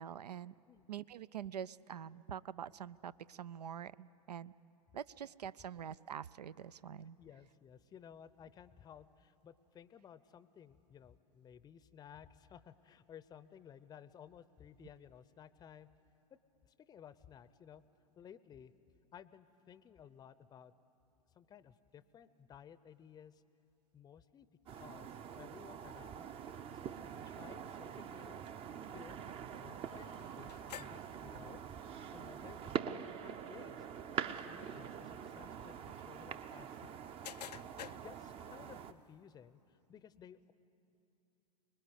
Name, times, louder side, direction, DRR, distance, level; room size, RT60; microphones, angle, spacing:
voice 1, 0.0-0.5 0.9-4.5 4.9-7.2, right 9 dB, 80° right, 18 dB, 0.5 m, -45 dB
voice 2, 7.2-15.9 16.7-17.8 18.2-18.7 19.1-20.7 21.4-23.4 23.9-26.4 26.7-28.5 28.9-29.2 29.5-31.6 32.1-33.9 34.3-36.9 37.8-40.5, left 8 dB, 20° left, 15 dB, 0.6 m, -57 dB
sound 1, 24.7-38.9, right 8 dB, 30° right, 0.7 m, -45 dB
sound 2, 29.8-39.2, left 10 dB, 80° left, 0.4 m, -56 dB
24.5 x 20.5 x 8.0 m, 2.8 s
hypercardioid pair, 100°, 20 cm